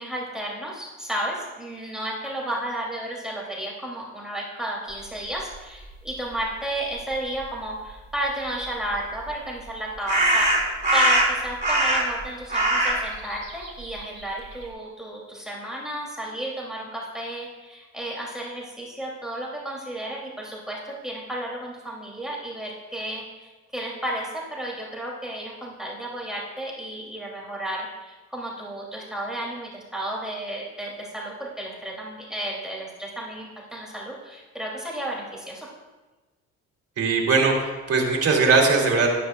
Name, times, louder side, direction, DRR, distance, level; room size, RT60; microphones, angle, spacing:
voice 1, 0.0-10.5 10.9-35.7, right 1 dB, ahead, -4 dB, 2.6 m, -32 dB
sound 1, 8.9-9.0 10.1-12.2 12.5-14.6, right 1 dB, 25° right, 3.5 m, -22 dB
voice 2, 37.0-39.1, right 4 dB, 55° right, 0 dB, 2.6 m, -20 dB
13.0 x 10.5 x 2.3 m, 1.2 s
cardioid pair, 90°, 30 cm